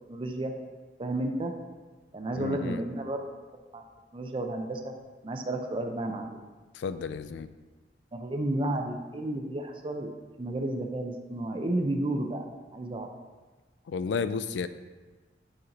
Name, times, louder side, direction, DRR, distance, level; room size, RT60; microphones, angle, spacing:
voice 1, 0.1-0.5 1.0-1.5 2.1-3.4 3.7-3.8 4.1-4.9 5.2-6.4 8.1-10.1 10.4-12.5 12.7-13.1, right 1 dB, 30° right, 4 dB, 0.5 m, -32 dB
voice 2, 2.4-2.8 6.7-7.5 13.9-14.7, left 5 dB, 70° left, 12 dB, 0.3 m, -32 dB
6.5 x 4.4 x 3.9 m, 1.3 s
head